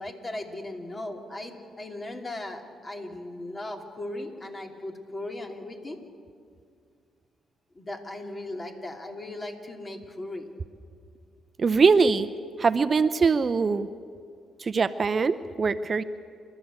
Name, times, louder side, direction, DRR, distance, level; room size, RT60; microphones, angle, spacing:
voice 1, 0.0-6.0 7.7-10.5, left 1 dB, 30° left, 3 dB, 3.0 m, -37 dB
voice 2, 11.6-12.3 12.6-13.9 14.6-16.0, right 5 dB, 45° right, 12 dB, 0.7 m, -22 dB
28.5 x 12.5 x 8.3 m, 2.3 s
cardioid pair, 75°, 0 cm